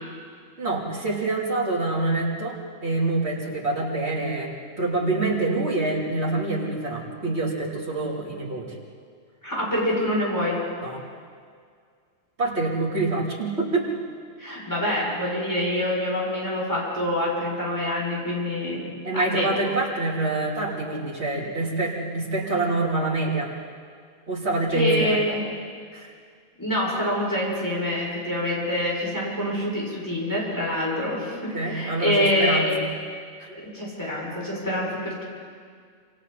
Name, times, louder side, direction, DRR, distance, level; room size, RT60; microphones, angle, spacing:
voice 1, 0.6-8.7 10.8-11.0 12.4-13.9 19.0-23.5 24.3-25.2 25.9-26.1 31.5-32.8 33.4-33.5, right 2 dB, 75° right, -5 dB, 4.0 m, -26 dB
voice 2, 9.4-10.6 14.4-18.8 19.1-19.8 24.7-25.4 26.6-32.7 33.5-35.2, left 1 dB, 15° left, -6 dB, 7.1 m, -26 dB
28.0 x 28.0 x 4.3 m, 2.1 s
omnidirectional pair, 1.1 m